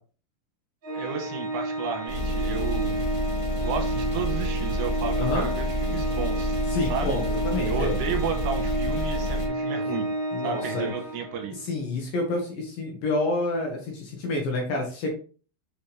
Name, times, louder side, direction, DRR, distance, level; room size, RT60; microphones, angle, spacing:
Organ, 0.8-11.6, right 1 dB, 30° right, 3.0 m, -31 dB
voice 1, 0.9-3.0 3.6-6.6 6.9-7.2 7.7-10.1 10.4-11.5, right 6 dB, 80° right, 5 dB, 2.9 m, -32 dB
sound 1, 2.1-9.5, equal, 10° left, 1.5 m, -29 dB
voice 2, 6.7-7.9 9.9-10.0 10.3-10.9 11.7-15.1, left 2 dB, 65° left, 0 dB, 2.5 m, -28 dB
6.9 x 5.5 x 3.4 m, 0.39 s
omnidirectional pair, 5.4 m